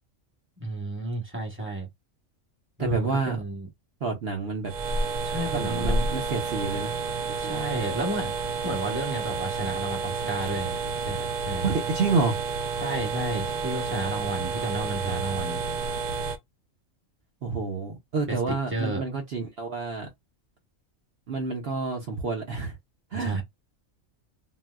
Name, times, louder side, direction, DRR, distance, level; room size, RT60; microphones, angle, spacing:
voice 1, 0.6-1.9 2.8-3.7 5.2-6.0 7.4-11.7 12.8-15.6 18.3-19.0 23.1-23.4, right 2 dB, 10° right, 1.0 m, -32 dB
voice 2, 2.8-3.4 4.0-4.7 5.5-6.9 7.4-7.8 11.6-12.4 17.4-20.1 21.3-22.7 23.1-23.4, right 4 dB, 55° right, 0.9 m, -29 dB
sound 1, 4.6-16.4, right 4 dB, 80° right, 0.4 m, -30 dB
3.9 x 2.1 x 2.3 m
omnidirectional pair, 1.4 m